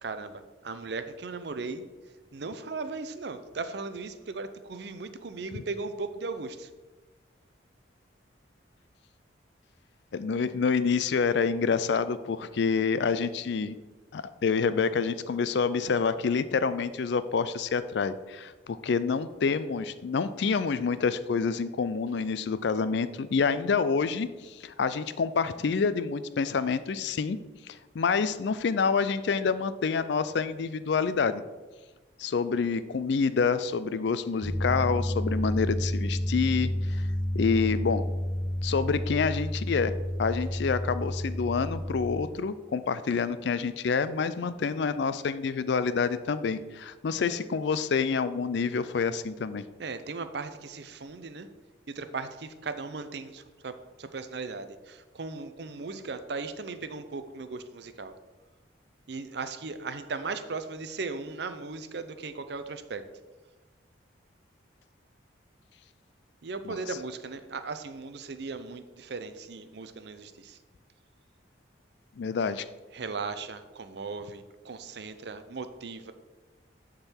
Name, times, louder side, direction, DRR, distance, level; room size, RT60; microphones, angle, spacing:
voice 1, 0.0-1.9 2.3-6.7 49.8-51.5 51.9-58.1 59.1-63.0 66.4-70.6 72.9-76.1, right 4 dB, 60° right, 10 dB, 0.5 m, -37 dB
voice 2, 10.1-13.8 14.1-27.4 27.7-31.4 32.2-37.1 37.3-38.0 38.6-39.9 40.2-49.6 66.7-66.8 72.2-72.7, left 5 dB, 65° left, 14 dB, 0.4 m, -27 dB
sound 1, 34.4-42.3, equal, ahead, 0.5 m, -30 dB
9.8 x 3.8 x 4.4 m, 1.2 s
head